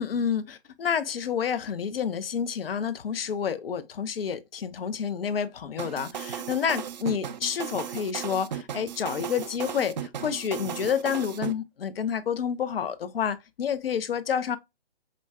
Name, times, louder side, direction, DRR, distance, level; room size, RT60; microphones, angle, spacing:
voice 1, 0.0-14.6, left 7 dB, 65° left, 0.6 m, -29 dB
sound 1, 5.8-11.5, right 8 dB, 45° right, 0.4 m, -35 dB
5.0 x 2.1 x 2.3 m
figure-of-eight pair, 140°, 31 cm